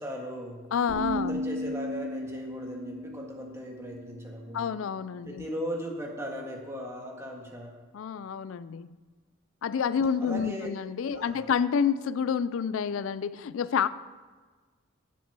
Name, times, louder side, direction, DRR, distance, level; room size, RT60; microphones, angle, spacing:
voice 1, 0.0-0.6 1.1-4.7 5.2-7.7 10.2-10.7 11.1-11.5, equal, 15° right, 0 dB, 1.7 m, -38 dB
voice 2, 0.7-1.4 4.5-5.4 7.9-8.9 9.6-13.9, left 7 dB, 80° left, 16 dB, 0.4 m, -28 dB
sound 1, 0.9-4.8, equal, 45° right, 1.4 m, -36 dB
10.0 x 7.3 x 6.8 m, 1.4 s
head